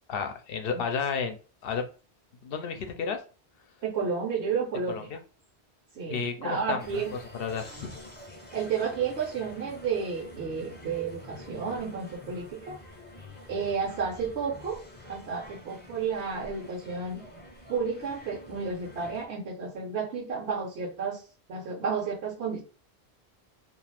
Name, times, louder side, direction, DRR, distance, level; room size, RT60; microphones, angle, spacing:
voice 1, 0.1-1.9 2.4-3.2 4.9-5.2 6.1-7.0 7.4-7.9, left 6 dB, 65° left, 6 dB, 0.7 m, -32 dB
voice 2, 3.8-5.1 5.9-7.1 8.5-12.8 13.5-14.8 15.1-17.2 17.7-21.2 21.5-22.6, right 5 dB, 75° right, -2 dB, 1.0 m, -31 dB
sound 1, 6.8-19.3, left 1 dB, 10° left, 0.5 m, -47 dB
2.4 x 2.4 x 3.2 m, 0.36 s
omnidirectional pair, 1.1 m